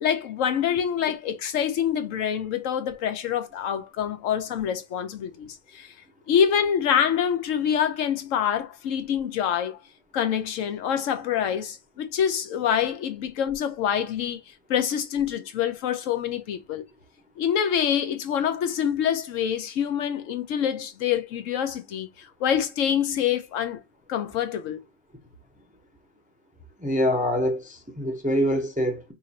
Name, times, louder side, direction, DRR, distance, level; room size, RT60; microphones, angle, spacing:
voice 1, 0.0-5.5 5.7-5.9 6.3-9.8 10.1-14.4 14.7-16.8 17.4-22.1 22.4-23.8 24.1-24.8, left 8 dB, 85° left, 1.1 m, -26 dB
voice 2, 26.8-29.0, equal, 10° right, 0.4 m, -25 dB
3.0 x 2.5 x 4.1 m
omnidirectional pair, 1.3 m